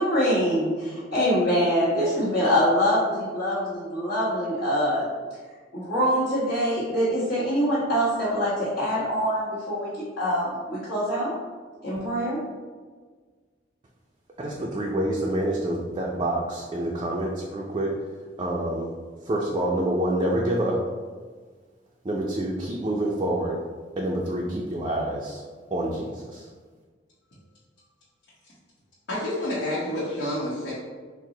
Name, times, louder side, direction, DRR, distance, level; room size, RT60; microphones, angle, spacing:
voice 1, 0.0-5.0 5.7-11.3 11.8-12.4, equal, 65° left, -13 dB, 1.4 m, -24 dB
voice 2, 14.4-17.9 18.4-18.9 19.3-20.8 22.0-23.5 24.0-25.4 25.7-26.5, right 1 dB, 25° right, -3 dB, 0.4 m, -27 dB
voice 3, 29.1-30.7, left 1 dB, 80° left, -8 dB, 0.9 m, -28 dB
4.5 x 2.0 x 3.7 m, 1.5 s
head